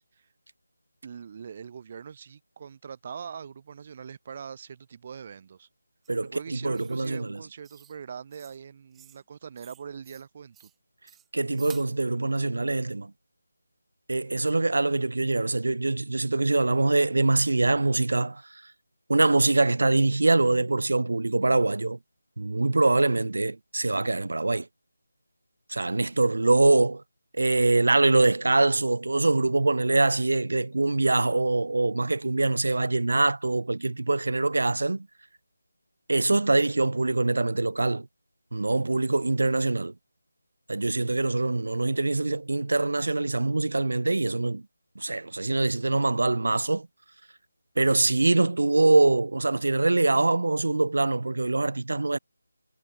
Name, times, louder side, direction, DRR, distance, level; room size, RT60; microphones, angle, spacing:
voice 1, 1.0-5.7 6.2-10.7 12.3-12.4, right 7 dB, 30° right, 3.0 m, -42 dB
sound 1, 6.0-6.2 6.7-7.1 7.6-8.0 8.3-8.6 8.9-9.2 9.6-10.2 10.5-10.7 11.1-11.9, right 11 dB, 5° right, 0.7 m, -52 dB
voice 2, 6.1-7.4 11.3-13.1 14.1-18.6 19.1-22.0 22.4-24.7 25.7-27.0 27.3-35.1 36.1-38.1 38.5-39.9 40.7-44.6 45.0-46.9 47.8-52.2, right 2 dB, 75° right, 0.4 m, -24 dB
figure-of-eight pair, 170°, 0 cm